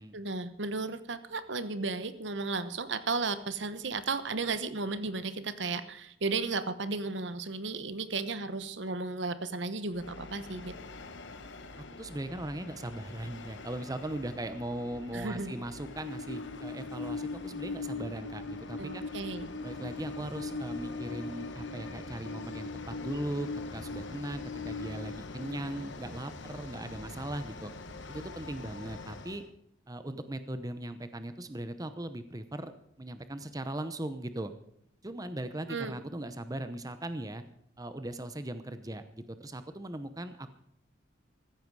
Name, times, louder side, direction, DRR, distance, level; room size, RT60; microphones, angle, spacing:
voice 1, 0.0-10.8 15.1-15.5 18.8-19.5 35.7-36.0, right 3 dB, 65° right, 12 dB, 1.0 m, -34 dB
Train, 9.9-29.4, left 3 dB, 65° left, 1.2 m, -41 dB
voice 2, 11.8-19.1 19.6-27.7 28.1-29.4 29.9-32.7 33.0-34.5 35.0-37.4 37.8-40.5, right 1 dB, 20° right, 10 dB, 0.8 m, -39 dB
15.0 x 14.5 x 4.8 m, 0.71 s
head